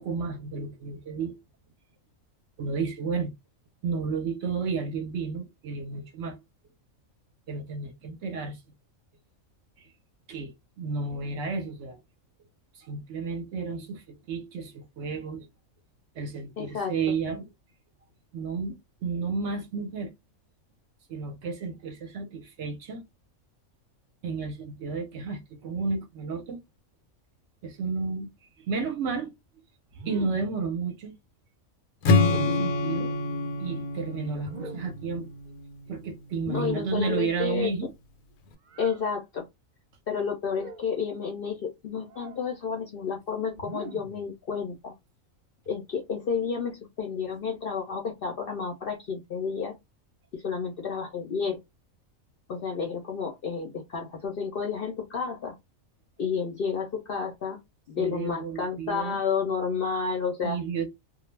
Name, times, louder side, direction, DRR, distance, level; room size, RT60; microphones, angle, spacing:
voice 1, 0.0-1.4 2.6-3.3 3.8-6.4 7.5-8.6 9.8-9.9 10.3-12.0 12.7-15.5 16.1-17.5 18.3-20.1 21.1-23.0 24.2-26.6 27.6-28.3 28.7-29.3 30.1-31.2 32.2-33.2 33.6-35.3 35.9-37.9 58.0-59.2 60.4-60.9, right 4 dB, 65° right, 0.8 m, -32 dB
voice 2, 16.6-16.9 36.5-37.7 38.8-39.5 40.1-44.9 45.7-49.8 50.3-51.6 52.5-55.5 56.2-57.6 57.9-60.6, left 6 dB, 60° left, 0.6 m, -31 dB
sound 1, 29.9-30.6 32.1-32.8 34.4-35.1 36.4-37.1 38.7-39.0 40.4-40.9 42.1-42.4 43.5-44.2, right 4 dB, 85° right, 0.4 m, -41 dB
Strum, 32.0-36.2, left 3 dB, 85° left, 1.0 m, -27 dB
2.3 x 2.0 x 3.1 m
omnidirectional pair, 1.4 m